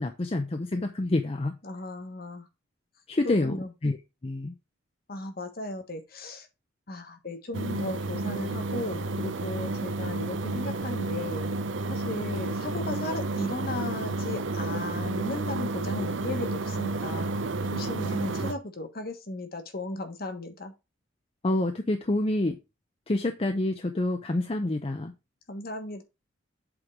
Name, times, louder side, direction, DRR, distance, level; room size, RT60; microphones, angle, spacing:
voice 1, 0.0-1.6 3.1-4.0 4.2-4.5 21.4-22.6 23.1-25.1, left 2 dB, 30° left, 0.6 m, -27 dB
voice 2, 1.6-2.5 3.2-3.7 5.1-6.5 6.9-11.5 11.9-17.3 17.7-20.7 25.5-26.0, left 2 dB, 50° left, 1.3 m, -36 dB
sound 1, 7.5-18.5, right 2 dB, 70° right, 0.7 m, -31 dB
7.9 x 3.8 x 4.7 m
head